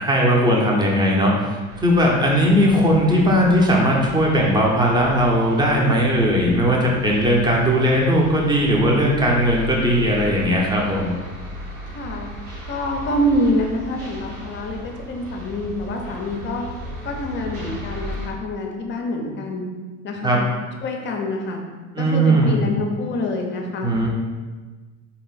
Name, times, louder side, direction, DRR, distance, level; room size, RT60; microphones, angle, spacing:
voice 1, 0.0-11.1 20.2-20.4 21.9-22.7 23.8-24.1, equal, 10° right, -2 dB, 0.8 m, -18 dB
sound 1, 1.7-18.3, equal, 70° right, 1.3 m, -36 dB
voice 2, 11.8-12.3 12.7-16.7 17.0-19.7 20.0-20.4 20.8-21.6 22.0-23.9, left 1 dB, 30° left, 2 dB, 0.6 m, -26 dB
3.9 x 2.9 x 3.9 m, 1.3 s
figure-of-eight pair, 65°, 41 cm